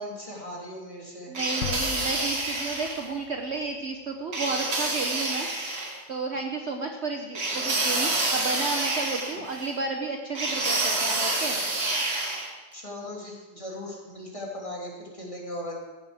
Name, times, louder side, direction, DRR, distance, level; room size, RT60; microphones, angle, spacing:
voice 1, 0.0-1.3 12.7-15.8, left 1 dB, 20° left, -3 dB, 3.0 m, -38 dB
voice 2, 1.3-5.5 6.1-11.6, right 3 dB, 50° right, 3 dB, 1.2 m, -32 dB
sound 1, 1.3-3.1 4.3-6.0 7.3-9.7 10.3-12.5, right 2 dB, 85° right, 2.9 m, -28 dB
sound 2, 1.6-4.5, left 9 dB, 60° left, 0.9 m, -39 dB
15.5 x 11.0 x 5.0 m, 1.2 s
omnidirectional pair, 1.7 m